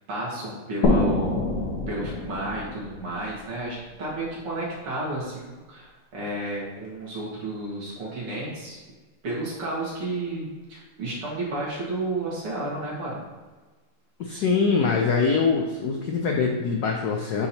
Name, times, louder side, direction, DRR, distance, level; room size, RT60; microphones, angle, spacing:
voice 1, 0.1-1.4 1.9-8.8 9.2-13.2, right 2 dB, 80° right, -6 dB, 2.7 m, -32 dB
sound 1, 0.8-4.3, left 2 dB, 60° left, 1.5 m, -27 dB
voice 2, 14.2-17.5, left 5 dB, 90° left, 1 dB, 0.8 m, -23 dB
8.6 x 2.9 x 4.2 m, 1.3 s
omnidirectional pair, 2.4 m